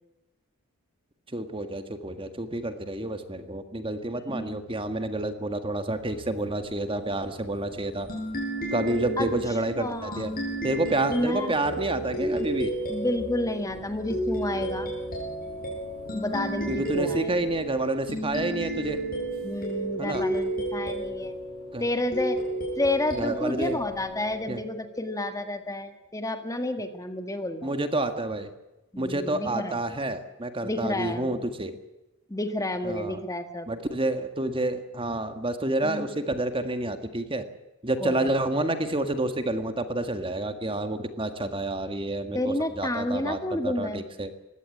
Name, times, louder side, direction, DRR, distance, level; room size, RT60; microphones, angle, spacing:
voice 1, 1.3-8.1 8.7-10.3 10.6-12.7 16.7-19.0 20.0-20.3 21.7-21.8 23.1-23.8 24.5-24.6 27.6-28.5 29.0-31.8 32.8-33.2 33.7-37.5 37.8-44.3, right 2 dB, 25° right, 8 dB, 1.7 m, -29 dB
voice 2, 4.1-4.6 9.2-9.3 9.8-10.4 11.1-11.6 12.9-14.9 16.1-17.4 19.4-21.4 21.8-22.4 22.8-27.7 28.9-29.8 30.6-31.3 32.3-33.7 35.8-36.2 38.0-38.3 42.3-44.0, left 1 dB, 15° left, 8 dB, 1.5 m, -30 dB
sound 1, 6.0-24.4, equal, 75° right, 5.5 m, -47 dB
sound 2, 8.1-25.3, right 1 dB, 45° left, 7.8 m, -33 dB
21.0 x 16.5 x 9.7 m, 1.0 s
head